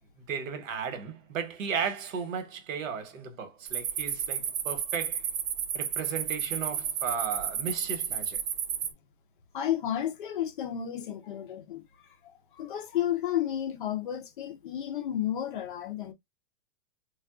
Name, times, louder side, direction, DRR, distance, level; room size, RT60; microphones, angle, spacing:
voice 1, 0.0-5.2 5.7-8.4, right 6 dB, 85° right, 1.1 m, -35 dB
sound 1, 3.7-8.9, right 9 dB, 45° right, 0.5 m, -32 dB
voice 2, 9.5-11.8 12.2-16.1, left 11 dB, 45° left, 0.4 m, -32 dB
3.5 x 2.2 x 2.3 m
supercardioid pair, 170°, 39 cm